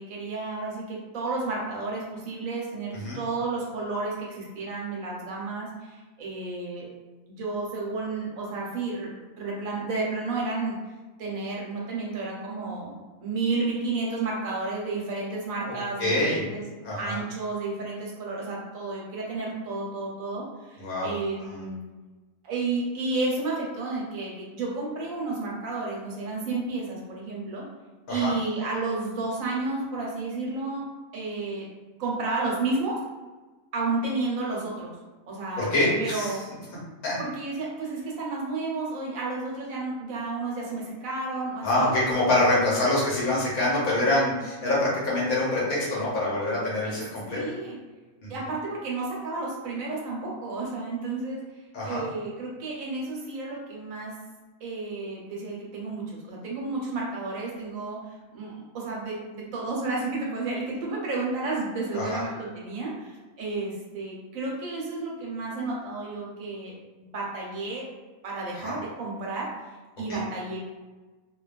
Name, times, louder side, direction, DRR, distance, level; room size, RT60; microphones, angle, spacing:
voice 1, 0.0-6.9 7.3-9.1 9.4-10.8 11.2-16.6 17.0-21.8 22.4-27.6 28.1-30.8 31.1-31.7 32.0-32.9 33.7-34.9 35.3-35.7 36.0-36.4 37.2-41.9 47.3-47.8 48.3-51.4 51.8-54.1 54.6-58.0 58.3-67.9 68.2-69.5 70.0-70.6, right 3 dB, 70° right, -3 dB, 1.1 m, -31 dB
voice 2, 15.7-16.4 16.8-17.2 20.8-21.1 21.5-21.6 28.1-28.3 35.6-36.4 37.0-37.1 41.6-47.4 48.2-48.3 51.7-52.0 61.9-62.2 68.5-68.7 70.1-70.2, left 1 dB, 80° left, -6 dB, 1.3 m, -25 dB
2.7 x 2.2 x 2.3 m, 1.2 s
omnidirectional pair, 1.5 m